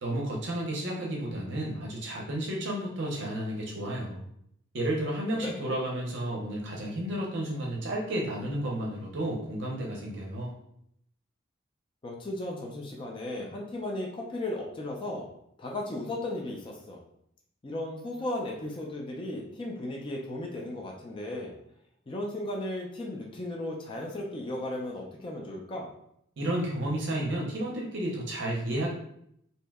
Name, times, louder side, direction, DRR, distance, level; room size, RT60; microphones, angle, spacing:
voice 1, 0.0-4.3 4.7-10.5 26.4-28.9, right 1 dB, 55° right, -2 dB, 0.6 m, -32 dB
voice 2, 12.0-15.3 15.6-17.0 17.6-21.6 22.1-25.9, left 1 dB, 25° left, -1 dB, 0.3 m, -35 dB
2.7 x 2.1 x 3.4 m, 0.73 s
head